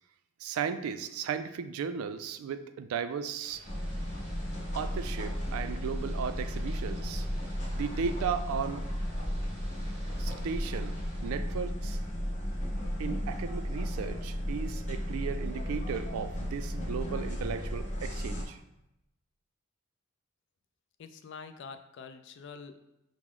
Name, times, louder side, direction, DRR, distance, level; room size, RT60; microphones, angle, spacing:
voice 1, 0.4-3.6 4.7-7.3 7.7-8.8 10.2-12.0 13.0-18.6, right 6 dB, 80° right, 11 dB, 0.3 m, -36 dB
Ocean / Boat Water vehicle, 3.4-11.3, right 1 dB, 30° right, 0.6 m, -53 dB
sound 1, 3.7-18.4, equal, 30° left, 0.7 m, -34 dB
voice 2, 21.0-22.9, left 5 dB, 55° left, 9 dB, 0.3 m, -46 dB
5.9 x 2.0 x 3.6 m, 0.88 s
head